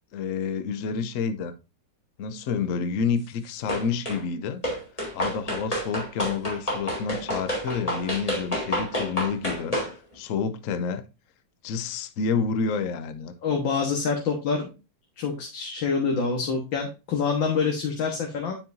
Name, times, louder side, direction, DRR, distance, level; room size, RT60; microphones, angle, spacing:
voice 1, 0.1-1.5 2.2-4.6 5.1-9.8 10.1-11.0 11.6-13.3, left 5 dB, 60° left, 0.9 m, -29 dB
sound 1, 3.7-4.2 4.6-9.9, equal, 20° left, 3.4 m, -29 dB
voice 2, 13.4-14.7 15.2-18.5, left 5 dB, 80° left, 2.1 m, -26 dB
9.4 x 5.7 x 2.6 m
omnidirectional pair, 2.1 m